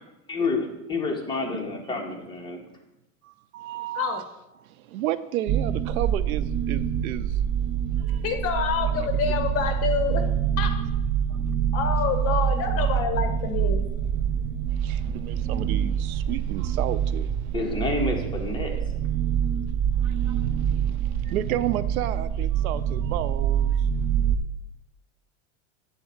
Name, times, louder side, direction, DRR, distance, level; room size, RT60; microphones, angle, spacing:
voice 1, 0.3-0.6 0.9-2.7 17.5-18.8, left 3 dB, 10° left, 1.6 m, -28 dB
voice 2, 3.2-4.2 4.6-7.4 8.1-8.2 8.9-9.5 11.3-11.4 12.3-12.4 14.7-17.5 20.0-23.9, right 13 dB, 85° right, 0.6 m, -33 dB
sound 1, 5.5-24.4, right 9 dB, 35° right, 0.7 m, -26 dB
voice 3, 8.2-10.2 10.6-10.7 11.7-13.8, left 7 dB, 35° left, 1.4 m, -27 dB
8.1 x 4.3 x 7.1 m
supercardioid pair, 125°, 41 cm